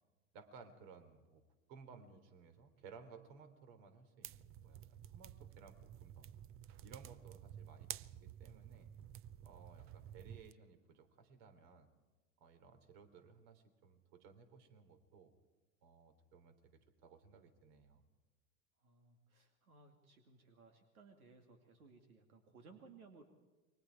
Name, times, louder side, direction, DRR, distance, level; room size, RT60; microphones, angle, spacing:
voice 1, 0.3-1.4 1.7-4.8 5.1-6.3 6.8-8.9 9.4-11.9 12.4-15.3 15.8-18.0, right 5 dB, 55° right, 8 dB, 3.7 m, -59 dB
sound 1, 4.2-10.5, right 11 dB, 30° right, 0.6 m, -52 dB
voice 2, 9.4-10.4 18.8-23.2, right 4 dB, 85° right, 5 dB, 2.6 m, -62 dB
28.5 x 23.5 x 4.8 m, 1.2 s
hypercardioid pair, 100°, 43 cm